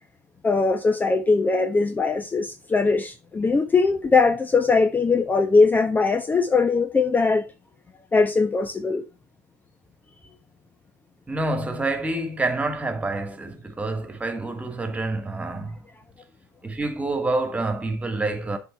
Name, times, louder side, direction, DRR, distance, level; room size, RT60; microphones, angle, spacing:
voice 1, 0.4-7.5 8.1-9.0, left 4 dB, 15° left, 1.0 m, -20 dB
voice 2, 11.3-15.8 16.6-18.6, right 2 dB, 10° right, 2.3 m, -27 dB
12.5 x 4.2 x 4.4 m
figure-of-eight pair, 75°, 11 cm